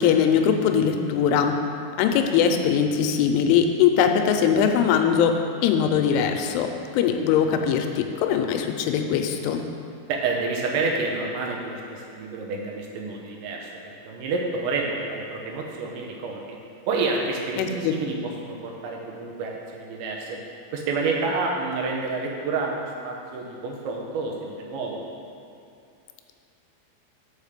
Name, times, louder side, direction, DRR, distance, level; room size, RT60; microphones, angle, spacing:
voice 1, 0.0-1.5 2.0-5.3 5.6-6.7 6.9-9.6 17.6-18.0, left 8 dB, 90° left, 5 dB, 3.1 m, -21 dB
voice 2, 10.1-16.6 16.9-20.4 20.7-25.0, right 3 dB, 80° right, -1 dB, 3.1 m, -29 dB
7.2 x 5.0 x 6.6 m, 2.6 s
omnidirectional pair, 5.4 m